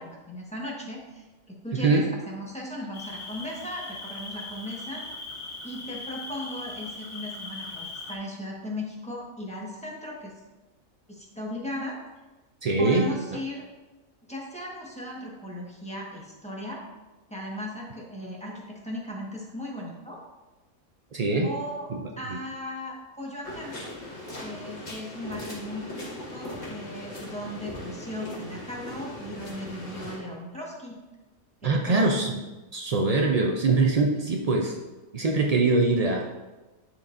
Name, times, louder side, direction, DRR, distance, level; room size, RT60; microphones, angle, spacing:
voice 1, 0.0-5.0 5.6-10.4 11.1-12.0 12.8-13.7 14.3-16.8 17.3-20.2 21.4-23.8 24.4-26.0 26.3-31.0 31.6-32.1, left 1 dB, 5° left, -4 dB, 1.2 m, -37 dB
voice 2, 1.7-2.1 12.6-13.1 21.1-21.5 22.3-22.4 31.6-32.4 32.7-34.8 35.1-36.3, right 3 dB, 90° right, 1 dB, 0.3 m, -23 dB
Cricket, 2.9-8.2, left 3 dB, 40° left, 2.4 m, -39 dB
sound 1, 23.4-30.2, left 1 dB, 65° left, 2.3 m, -39 dB
10.5 x 4.6 x 2.6 m, 1.1 s
omnidirectional pair, 1.4 m